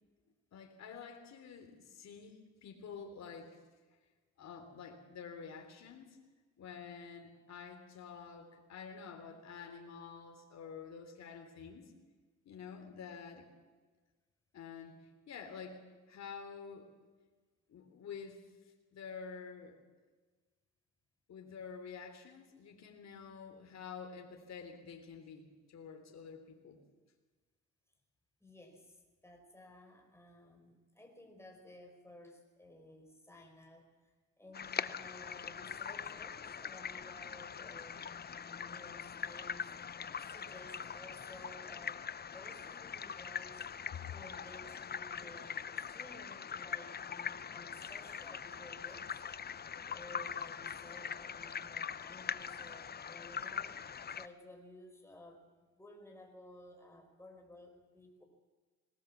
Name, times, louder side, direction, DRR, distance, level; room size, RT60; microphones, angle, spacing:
voice 1, 0.5-3.5 4.4-6.1 6.6-11.9 12.4-13.5 14.5-15.8 16.1-16.9 17.7-18.4 18.9-19.8 21.3-26.8, left 6 dB, 60° left, 4 dB, 3.4 m, -49 dB
voice 2, 28.4-34.0 34.4-38.0 38.4-39.7 40.2-42.1 42.3-43.6 44.1-49.2 49.9-55.4 55.8-58.2, left 1 dB, 10° left, 2 dB, 5.1 m, -55 dB
sound 1, 34.5-54.3, left 7 dB, 35° left, 0.7 m, -42 dB
20.0 x 19.0 x 7.3 m, 1.3 s
cardioid pair, 90°, 30 cm